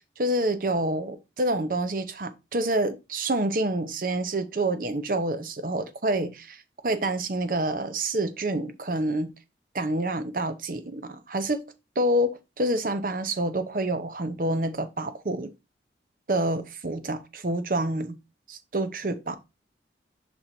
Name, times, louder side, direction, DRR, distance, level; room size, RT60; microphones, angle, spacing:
voice 1, 0.0-9.3 9.7-11.7 12.0-15.5 16.3-18.2 18.5-19.4, right 1 dB, 50° right, 0.7 m, -27 dB
6.1 x 3.9 x 4.3 m
head